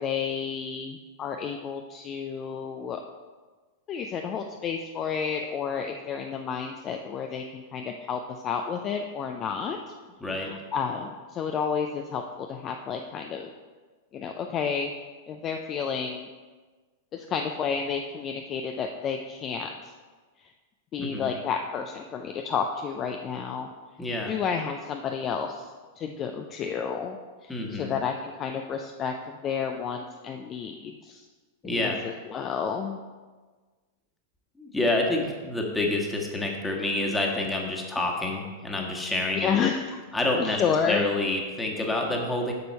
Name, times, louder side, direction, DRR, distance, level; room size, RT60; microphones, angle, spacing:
voice 1, 0.0-3.0 3.9-9.8 10.4-13.5 14.1-14.9 15.3-16.3 17.1-19.7 20.9-23.7 24.3-25.7 26.0-27.5 27.8-31.2 31.6-33.0 39.3-39.8 40.4-41.0, left 6 dB, 30° left, 3 dB, 0.5 m, -31 dB
voice 2, 10.2-10.5 21.0-21.3 24.0-24.3 27.5-27.9 31.6-32.0 34.6-39.6 40.1-42.5, left 2 dB, 10° left, 0 dB, 1.5 m, -28 dB
7.9 x 6.9 x 4.3 m, 1.4 s
figure-of-eight pair, 95°, 0 cm